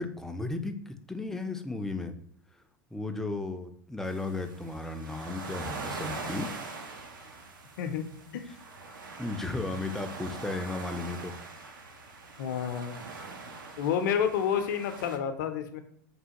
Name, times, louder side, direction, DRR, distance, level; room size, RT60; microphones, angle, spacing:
voice 1, 0.0-2.1 2.9-6.5 9.2-11.3, left 2 dB, 5° left, 6 dB, 0.3 m, -35 dB
sound 1, 4.0-15.2, right 3 dB, 75° right, 0.5 m, -42 dB
voice 2, 12.4-13.0 13.8-15.8, left 8 dB, 65° left, 8 dB, 0.5 m, -29 dB
3.2 x 2.2 x 2.8 m, 0.65 s
hypercardioid pair, 90°, 11 cm